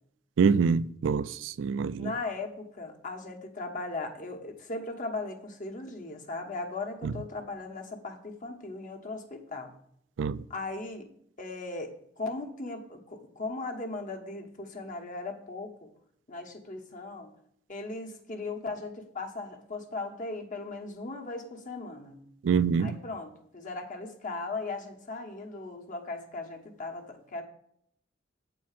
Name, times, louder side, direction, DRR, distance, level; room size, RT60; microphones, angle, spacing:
voice 1, 0.4-2.1 7.0-7.1 10.2-10.4 22.4-23.0, right 6 dB, 70° right, 0.4 m, -25 dB
voice 2, 2.0-9.7 10.5-11.1 11.4-15.9 16.3-17.3 17.7-22.2 22.8-27.4, left 3 dB, 45° left, 1.3 m, -38 dB
8.4 x 4.5 x 7.3 m
head